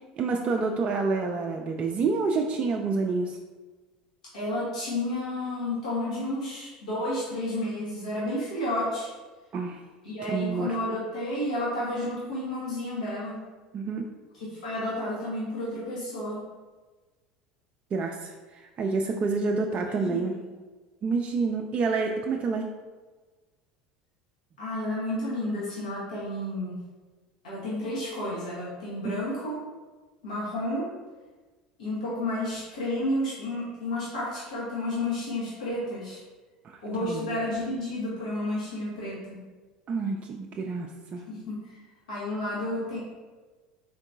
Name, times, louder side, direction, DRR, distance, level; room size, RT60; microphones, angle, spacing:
voice 1, 0.2-3.4 9.5-9.8 10.3-10.7 13.7-14.1 17.9-20.3 21.0-22.7 29.0-29.1 36.6-37.4 39.9-41.2, right 4 dB, 35° right, 1 dB, 0.3 m, -28 dB
voice 2, 4.3-9.1 10.0-13.4 14.3-16.4 19.9-20.2 24.6-26.8 27.4-29.6 30.2-30.9 31.8-36.2 36.8-39.4 41.3-41.8 42.1-43.0, left 1 dB, 85° left, -8 dB, 1.1 m, -31 dB
3.8 x 3.5 x 2.6 m, 1.3 s
hypercardioid pair, 75°, 4 cm